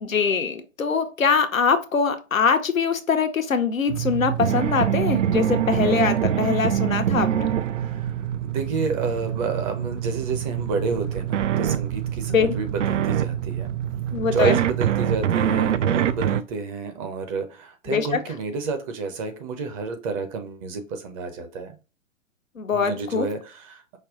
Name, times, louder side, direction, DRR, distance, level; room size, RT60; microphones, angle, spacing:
voice 1, 0.0-7.5 12.3-12.5 14.1-14.6 17.9-18.1 22.6-23.3, left 5 dB, 85° left, 0.8 m, -23 dB
sound 1, 3.9-16.4, right 10 dB, 65° right, 0.5 m, -25 dB
voice 2, 7.8-8.1 8.4-13.7 14.3-21.8 22.7-24.0, right 4 dB, 25° right, 0.8 m, -30 dB
5.3 x 2.2 x 3.7 m
figure-of-eight pair, 120°, 40 cm